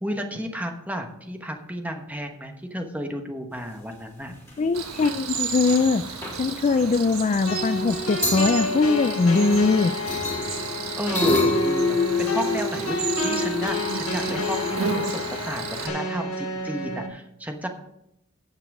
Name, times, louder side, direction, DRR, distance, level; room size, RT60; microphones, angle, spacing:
voice 1, 0.0-4.3 11.0-17.7, equal, 5° right, 4 dB, 1.1 m, -32 dB
sound 1, 4.3-4.5 4.8-5.1 5.3-5.9 6.2-6.4 7.9-8.0 8.2-9.7 10.1-14.8, left 3 dB, 15° left, 4.0 m, -27 dB
voice 2, 4.6-6.1 6.4-9.9, left 4 dB, 35° left, 11 dB, 0.3 m, -21 dB
Cricket, 4.7-15.9, right 6 dB, 80° right, 1.5 m, -33 dB
sound 2, 7.5-17.1, left 1 dB, 70° left, 1.6 m, -30 dB
16.0 x 5.8 x 4.9 m, 0.82 s
head